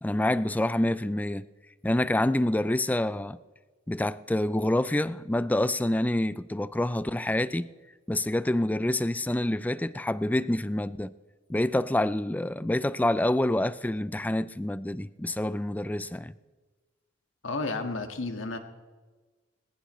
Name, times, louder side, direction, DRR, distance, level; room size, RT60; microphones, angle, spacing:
voice 1, 0.0-1.5 1.8-3.4 3.9-7.7 8.1-11.1 11.5-16.3, left 1 dB, 10° left, 0.4 m, -27 dB
voice 2, 17.4-18.6, left 3 dB, 80° left, 1.8 m, -32 dB
20.5 x 19.5 x 3.2 m
head